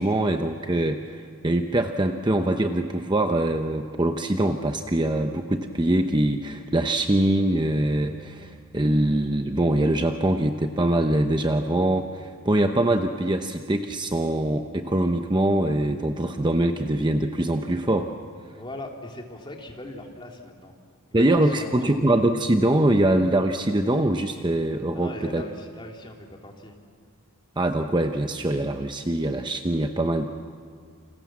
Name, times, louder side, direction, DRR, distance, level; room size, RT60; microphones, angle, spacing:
voice 1, 0.0-18.1 21.1-25.4 27.6-30.2, right 1 dB, 20° right, 5 dB, 0.8 m, -23 dB
voice 2, 18.6-20.7 21.1-22.0 24.9-26.7, left 1 dB, 20° left, 1 dB, 3.0 m, -39 dB
29.0 x 27.0 x 7.4 m, 2.1 s
head